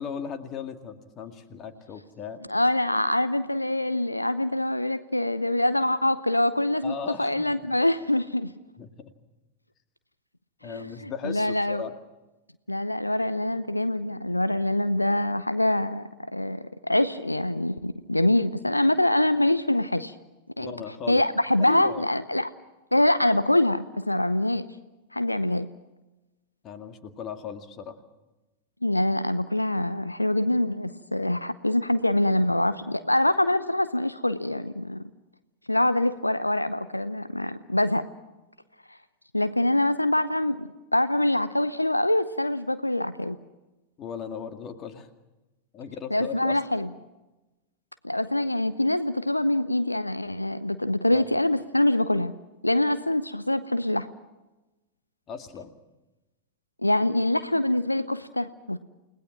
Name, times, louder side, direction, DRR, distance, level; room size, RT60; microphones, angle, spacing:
voice 1, 0.0-2.4 6.8-7.5 8.8-8.9 10.6-11.9 20.6-21.2 21.6-22.0 26.6-28.0 44.0-45.1 45.7-46.6 51.1-51.4 55.3-55.7, left 7 dB, 30° left, 7 dB, 2.2 m, -37 dB
voice 2, 2.5-8.5 10.6-11.8 12.7-20.1 20.6-20.7 21.1-22.5 22.9-24.7 25.1-25.7 28.8-35.0 35.7-38.0 38.9-39.0 39.3-43.4 46.1-46.9 48.0-52.3 52.6-54.1 56.8-58.8, left 1 dB, 85° left, 13 dB, 0.7 m, -24 dB
29.5 x 19.0 x 6.0 m, 1.0 s
figure-of-eight pair, 90°, 0 cm